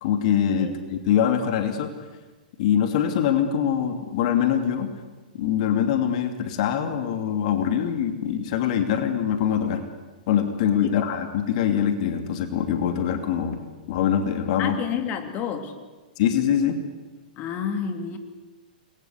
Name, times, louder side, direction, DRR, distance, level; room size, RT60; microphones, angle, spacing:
voice 1, 0.0-1.9 2.6-4.9 5.4-9.8 10.3-14.8 16.2-16.8, left 9 dB, 50° left, 7 dB, 2.8 m, -23 dB
voice 2, 14.6-15.7 17.4-18.2, left 7 dB, 35° left, 7 dB, 2.9 m, -29 dB
29.0 x 22.5 x 8.2 m, 1.2 s
figure-of-eight pair, 110°, 5 cm